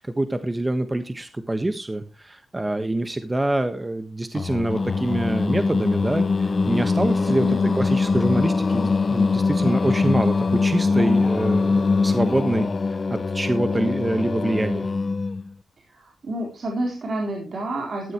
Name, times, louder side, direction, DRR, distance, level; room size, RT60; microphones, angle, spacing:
voice 1, 0.0-14.9, right 1 dB, 20° right, 10 dB, 1.3 m, -25 dB
Singing, 4.3-15.5, left 4 dB, 45° left, 0.7 m, -22 dB
voice 2, 7.3-8.0 15.9-18.1, right 1 dB, 55° right, 0 dB, 4.0 m, -30 dB
14.5 x 12.0 x 3.0 m, 0.30 s
cardioid pair, 80°, 0 cm